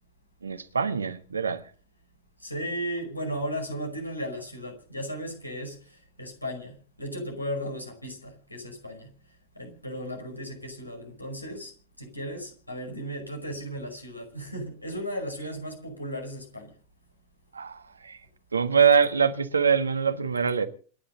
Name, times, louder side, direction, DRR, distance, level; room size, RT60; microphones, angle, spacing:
voice 1, 0.4-1.6 17.5-18.2 18.5-20.7, right 6 dB, 75° right, 1.5 m, -24 dB
voice 2, 2.4-5.8 6.2-9.1 9.6-11.7 12.0-16.7, equal, 85° left, 5.1 m, -35 dB
27.5 x 10.0 x 3.8 m
figure-of-eight pair, 90°, 0 cm